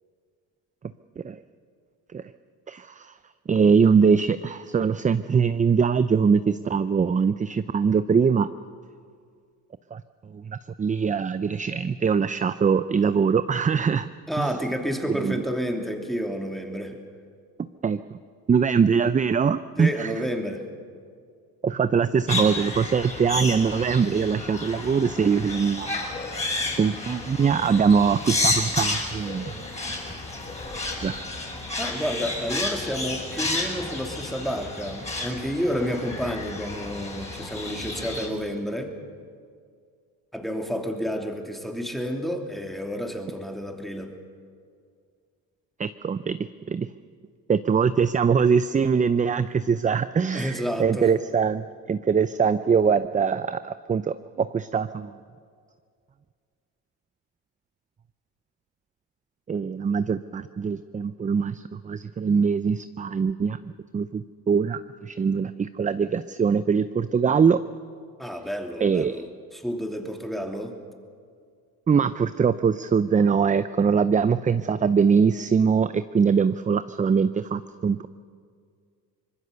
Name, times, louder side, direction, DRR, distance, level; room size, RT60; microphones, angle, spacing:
voice 1, 2.7-3.1 3.5-8.5 9.9-10.0 10.3-14.1 14.4-14.5 15.2-15.4 17.8-18.2 18.5-20.1 21.6-25.9 26.8-29.5 31.0-31.2 45.8-46.4 46.7-46.9 47.5-55.1 59.5-63.6 63.9-67.6 68.8-69.2 71.9-78.1, right 6 dB, 20° right, 13 dB, 0.5 m, -22 dB
voice 2, 14.3-17.0 19.8-20.6 31.8-38.9 40.3-44.1 50.3-51.1 68.2-70.8, equal, ahead, 3 dB, 2.9 m, -30 dB
sound 1, 22.3-38.3, left 2 dB, 15° left, 5.8 m, -31 dB
24.5 x 20.5 x 6.9 m, 2.2 s
supercardioid pair, 85°, 39 cm